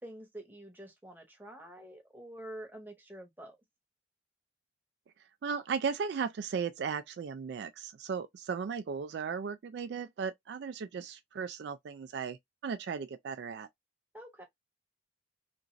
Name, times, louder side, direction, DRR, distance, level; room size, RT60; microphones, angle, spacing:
voice 1, 0.0-3.6 14.1-14.4, right 1 dB, 10° right, 0.8 m, -47 dB
voice 2, 5.4-12.4 12.6-13.7, right 6 dB, 65° right, 0.3 m, -36 dB
2.9 x 2.4 x 2.5 m
head